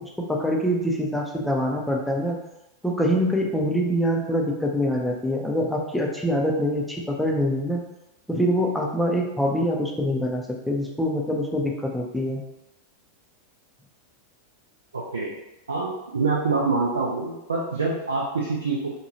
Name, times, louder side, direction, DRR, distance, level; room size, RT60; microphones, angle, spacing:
voice 1, 0.0-2.4 2.8-7.8 8.3-12.4, equal, 5° left, -1 dB, 0.5 m, -25 dB
voice 2, 14.9-15.3 15.7-18.9, right 3 dB, 70° right, -4 dB, 0.4 m, -26 dB
2.8 x 2.3 x 2.9 m, 0.91 s
figure-of-eight pair, 90°, 0 cm